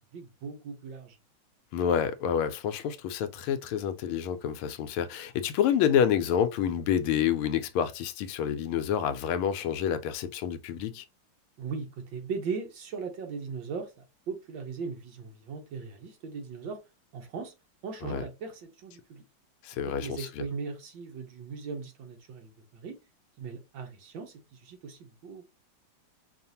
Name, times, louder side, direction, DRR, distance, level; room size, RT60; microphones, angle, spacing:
voice 1, 0.1-1.2 11.6-13.9 14.3-16.8 17.1-17.5 17.8-19.2 20.0-23.0 23.4-25.5, right 5 dB, 65° right, 1.6 m, -38 dB
voice 2, 1.7-11.0 18.0-18.2 19.6-20.4, left 8 dB, 80° left, 1.4 m, -28 dB
5.2 x 2.5 x 2.8 m
omnidirectional pair, 2.4 m